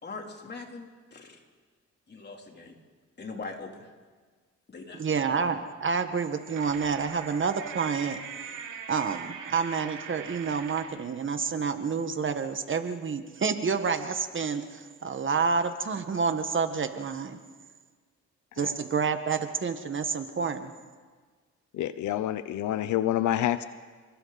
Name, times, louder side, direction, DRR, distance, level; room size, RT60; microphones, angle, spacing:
voice 1, 0.0-1.4 2.1-2.8 3.2-3.9 4.7-5.1, left 3 dB, 35° left, 1 dB, 3.5 m, -41 dB
voice 2, 5.0-8.5 8.9-17.4 18.6-20.7, right 5 dB, 40° right, 8 dB, 1.6 m, -29 dB
sound 1, 6.1-11.0, right 7 dB, 80° right, 3.2 m, -41 dB
voice 3, 21.7-23.6, left 12 dB, 75° left, 13 dB, 0.8 m, -27 dB
30.0 x 21.5 x 4.2 m, 1.5 s
cardioid pair, 90°, 30 cm